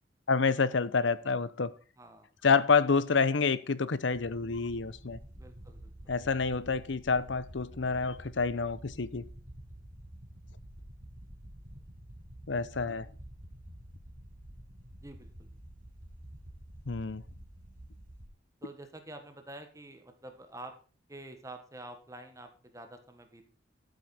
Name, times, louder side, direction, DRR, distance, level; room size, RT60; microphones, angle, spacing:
voice 1, 0.3-1.7 2.4-5.2 6.1-9.3 12.5-13.1 16.9-17.2, left 4 dB, 75° left, 0.8 m, -28 dB
voice 2, 2.0-2.3 5.4-6.1 15.0-15.5 18.6-20.8 21.1-23.5, right 1 dB, 15° right, 1.4 m, -48 dB
sound 1, 4.1-18.3, right 1 dB, 45° right, 3.4 m, -49 dB
13.0 x 8.0 x 4.3 m
head